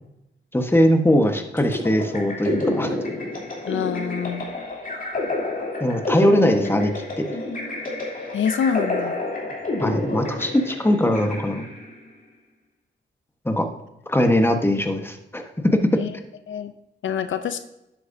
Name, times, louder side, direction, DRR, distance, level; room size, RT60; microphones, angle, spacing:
voice 1, 0.5-2.9 5.8-7.3 9.8-11.6 13.4-13.7 14.1-16.0, left 1 dB, 10° left, 5 dB, 1.3 m, -20 dB
sound 1, 1.6-12.0, left 2 dB, 45° left, 3.2 m, -29 dB
voice 2, 3.7-4.4 8.3-9.1 15.9-16.1 16.5-16.7 17.0-17.6, left 7 dB, 80° left, 10 dB, 0.6 m, -25 dB
10.5 x 8.5 x 2.7 m, 0.88 s
cardioid pair, 70°, 20 cm